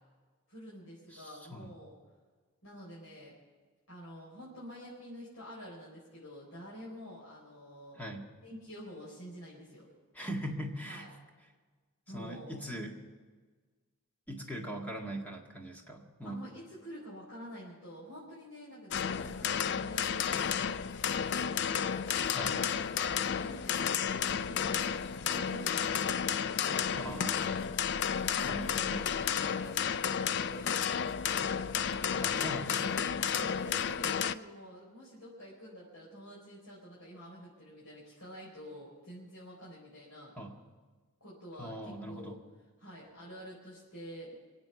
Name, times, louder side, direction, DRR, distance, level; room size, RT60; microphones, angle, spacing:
voice 1, 0.5-1.9 2.6-3.4 3.9-8.0 8.4-9.9 10.9-11.1 12.1-12.6 16.2-20.6 21.0-21.9 22.3-22.7 23.2-25.9 26.4-27.3 28.3-32.3 32.8-40.6 41.2-42.4 42.8-44.4, equal, 80° left, -6 dB, 4.4 m, -48 dB
voice 2, 1.1-1.7 8.0-8.3 10.1-11.1 12.1-12.9 14.3-16.5 22.3-22.6 27.0-27.7 28.4-29.0 32.2-33.0 40.4-40.5 41.6-42.4, right 1 dB, 5° left, 0 dB, 1.9 m, -41 dB
sound 1, 18.9-34.3, left 7 dB, 50° left, 0.4 m, -32 dB
23.0 x 8.2 x 7.0 m, 1.4 s
head